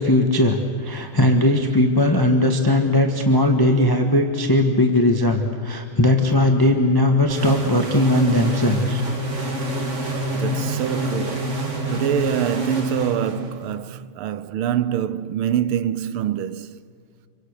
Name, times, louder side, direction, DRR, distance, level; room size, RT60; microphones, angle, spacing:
voice 1, 0.0-9.0, left 1 dB, 10° left, 1.3 m, -18 dB
sound 1, 7.3-13.8, equal, 35° right, 2.3 m, -27 dB
voice 2, 10.0-16.8, right 10 dB, 80° right, 1.6 m, -25 dB
28.0 x 24.5 x 6.6 m
omnidirectional pair, 2.3 m